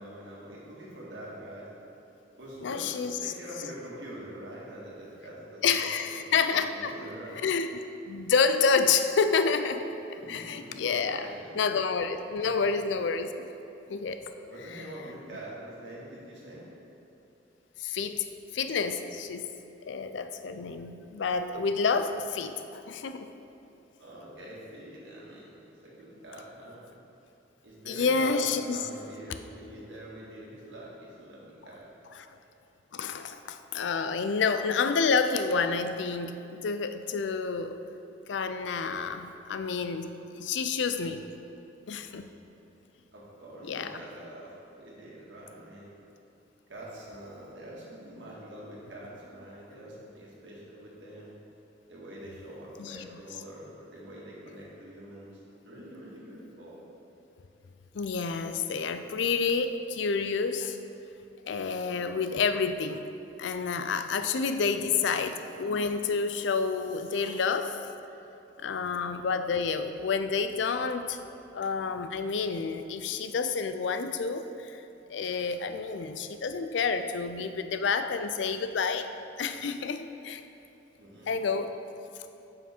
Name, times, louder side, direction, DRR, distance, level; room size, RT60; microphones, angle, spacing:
voice 1, 0.0-1.7 2.4-7.4 10.1-11.6 12.4-12.5 14.5-16.7 24.0-26.8 27.6-31.9 43.1-45.9 46.7-51.4 51.9-56.8 64.5-65.1 68.7-69.2 81.0-81.5, right 1 dB, 70° right, -5 dB, 1.8 m, -45 dB
voice 2, 2.6-3.2 5.6-6.9 7.4-7.7 8.1-11.3 11.5-13.5 13.9-14.2 17.8-18.2 18.5-19.5 19.9-23.3 27.9-28.9 32.9-37.8 38.3-41.3 41.9-42.3 43.7-43.9 52.8-53.1 57.9-60.8 61.5-63.1 63.4-67.8 68.6-71.2 71.5-74.8 75.1-79.1 79.4-80.4 81.3-81.8, left 5 dB, 70° left, 9 dB, 0.4 m, -29 dB
7.1 x 5.9 x 4.3 m, 3.0 s
head